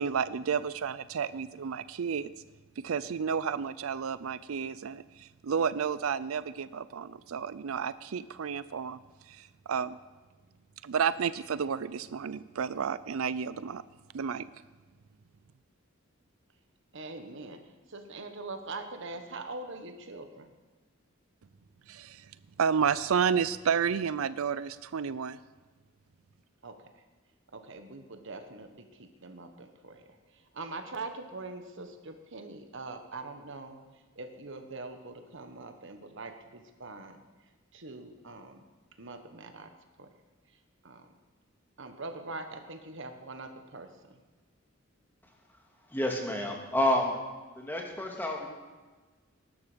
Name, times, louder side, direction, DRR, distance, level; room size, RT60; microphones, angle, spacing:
voice 1, 0.0-2.3 2.8-9.0 9.3-10.0 10.8-13.8 14.1-14.4 21.9-22.3 22.6-25.4, right 6 dB, 90° right, 16 dB, 0.5 m, -31 dB
voice 2, 16.9-20.5 26.6-27.0 27.5-37.2 37.7-38.6 39.0-39.7 40.0-40.1 40.8-41.1 41.8-44.2, right 3 dB, 65° right, 7 dB, 1.4 m, -43 dB
voice 3, 45.9-47.2 47.6-48.5, left 1 dB, 10° left, 0 dB, 2.4 m, -29 dB
19.5 x 12.0 x 5.2 m, 1.3 s
head